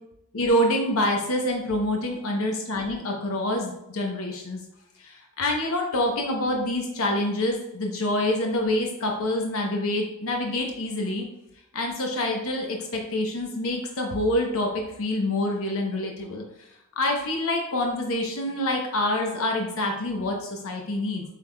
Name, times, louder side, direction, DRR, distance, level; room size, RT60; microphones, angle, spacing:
voice 1, 0.3-4.6 5.0-11.2 11.7-14.7 15.0-16.4 17.0-21.2, left 1 dB, 65° left, 1 dB, 0.8 m, -26 dB
7.0 x 3.4 x 2.2 m, 0.87 s
head